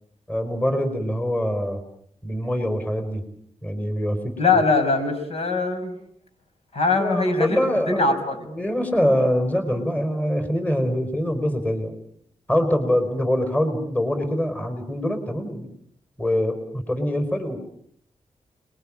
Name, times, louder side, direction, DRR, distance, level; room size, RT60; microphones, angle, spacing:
voice 1, 0.3-1.8 2.2-3.2 3.6-4.6 7.0-11.9 12.5-15.7 16.2-17.6, equal, 10° left, 8 dB, 4.7 m, -24 dB
voice 2, 4.4-6.0 6.7-7.6 7.9-8.5, left 3 dB, 60° left, 6 dB, 5.9 m, -21 dB
30.0 x 22.0 x 8.8 m, 0.69 s
wide cardioid pair, 125°, 12 cm